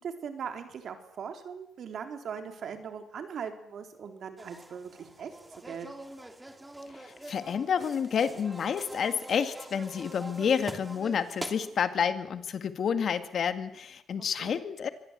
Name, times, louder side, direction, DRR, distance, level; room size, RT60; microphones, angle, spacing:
voice 1, 0.0-5.3 5.6-5.9 14.2-14.6, right 7 dB, 60° right, 6 dB, 3.8 m, -40 dB
sound 1, 4.4-11.8, right 1 dB, 10° right, 3.0 m, -44 dB
voice 2, 6.9-14.9, left 7 dB, 55° left, 10 dB, 1.9 m, -29 dB
24.5 x 19.0 x 8.2 m, 0.77 s
cardioid pair, 90°, 0 cm